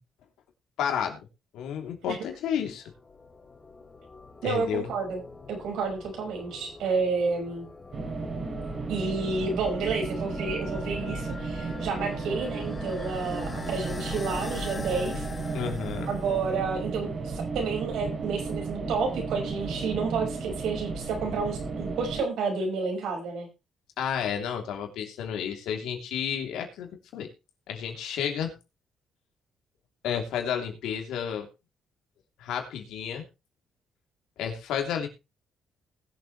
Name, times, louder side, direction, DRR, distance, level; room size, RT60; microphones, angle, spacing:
voice 1, 0.8-1.2 1.5-2.8 4.4-4.9 15.5-16.1 24.0-27.3 27.7-28.5 30.0-31.5 32.4-33.3 34.4-35.1, left 8 dB, 90° left, 3 dB, 3.0 m, -31 dB
sound 1, 2.5-16.7, left 4 dB, 30° left, 2.7 m, -43 dB
voice 2, 4.4-5.2 5.5-7.7 8.9-15.3 16.1-23.5, right 4 dB, 80° right, 2 dB, 5.4 m, -30 dB
sound 2, 7.9-22.2, right 4 dB, 50° right, 3.6 m, -34 dB
20.0 x 7.6 x 3.2 m, 0.28 s
cardioid pair, 90°, 0 cm